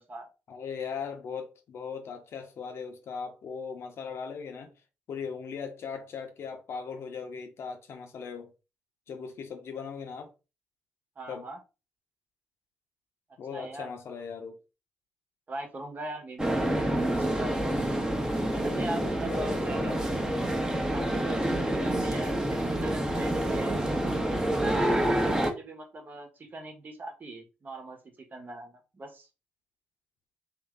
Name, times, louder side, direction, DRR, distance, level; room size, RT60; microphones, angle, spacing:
voice 1, 0.5-4.7 5.1-8.5 9.1-10.3 11.3-11.5 13.4-14.6 18.5-20.0, left 6 dB, 65° left, 0.9 m, -39 dB
voice 2, 11.2-11.6 13.5-13.9 15.5-16.8 17.2-17.7 18.5-19.9 20.9-23.8 24.9-29.3, right 2 dB, 40° right, 1.2 m, -41 dB
sound 1, 16.4-25.5, right 1 dB, 15° right, 1.0 m, -28 dB
3.1 x 2.8 x 3.7 m
supercardioid pair, 65°, 5 cm